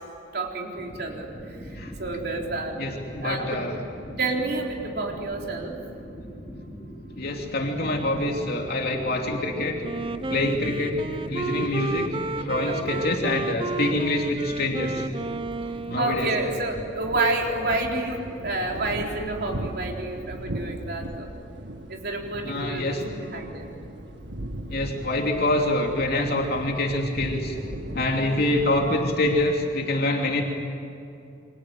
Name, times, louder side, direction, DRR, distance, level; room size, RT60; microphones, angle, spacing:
voice 1, 0.3-1.3 2.0-2.8 3.2-3.6 4.2-5.8 10.4-10.7 12.7-13.1 15.9-21.3 21.9-23.6 28.2-28.5, right 2 dB, 60° right, 0 dB, 4.0 m, -29 dB
sound 1, 0.7-15.4, equal, 15° left, 7.5 m, -41 dB
voice 2, 2.8-3.8 7.2-9.8 10.3-15.1 15.9-16.3 22.4-23.0 24.7-27.6 27.9-30.4, left 1 dB, 60° left, 1 dB, 2.9 m, -26 dB
Wind instrument woodwind instrument, 9.8-16.5, right 3 dB, 30° right, 0.6 m, -32 dB
sound 2, 9.9-29.5, right 1 dB, 90° right, 1.9 m, -39 dB
29.0 x 25.0 x 7.8 m, 2.7 s
head